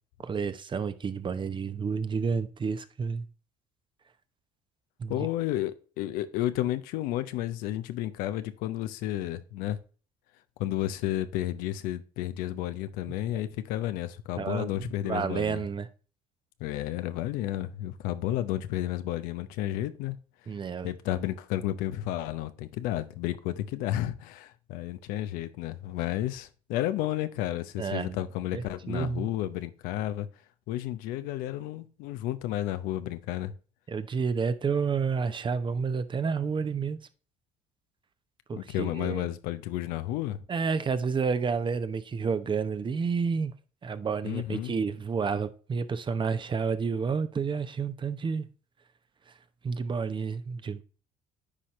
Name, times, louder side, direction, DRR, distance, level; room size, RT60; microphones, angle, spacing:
voice 1, 0.2-3.3 5.0-5.3 14.4-15.9 20.5-20.9 27.8-28.2 28.5-29.3 33.9-37.0 38.5-39.3 40.5-43.5 43.8-48.4 49.6-50.8, right 5 dB, 35° right, 0.9 m, -30 dB
voice 2, 5.1-9.8 10.6-15.6 16.6-20.2 20.8-30.3 30.7-33.5 38.5-40.4 44.2-44.7, left 13 dB, 80° left, 0.7 m, -32 dB
9.9 x 4.3 x 3.1 m
supercardioid pair, 75°, 14 cm